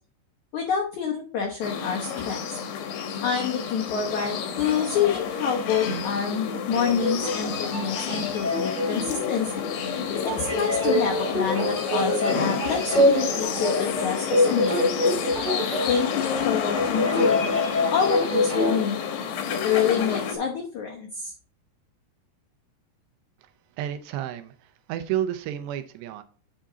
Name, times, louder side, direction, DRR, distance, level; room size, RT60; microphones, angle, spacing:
voice 1, 0.5-2.6 3.2-9.6 10.2-15.0 15.9-17.4 17.9-19.0 19.5-21.3, left 7 dB, 90° left, 0 dB, 1.6 m, -27 dB
sound 1, 1.6-20.4, left 7 dB, 70° left, 2.5 m, -30 dB
sound 2, 6.7-18.8, left 1 dB, 30° right, 1.3 m, -26 dB
voice 2, 23.8-26.2, right 11 dB, 80° right, 10 dB, 2.6 m, -31 dB
8.7 x 5.0 x 3.9 m, 0.39 s
omnidirectional pair, 5.2 m